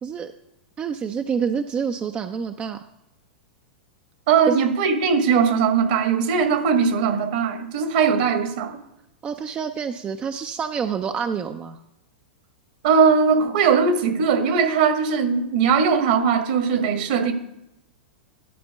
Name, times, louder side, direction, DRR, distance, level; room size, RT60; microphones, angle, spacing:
voice 1, 0.0-0.3 0.8-2.8 4.5-4.6 9.2-11.8, right 6 dB, 25° right, 7 dB, 0.5 m, -27 dB
voice 2, 4.3-8.8 12.8-17.3, right 6 dB, 60° right, 7 dB, 1.5 m, -20 dB
12.0 x 4.3 x 6.8 m, 0.88 s
hypercardioid pair, 100°, 5 cm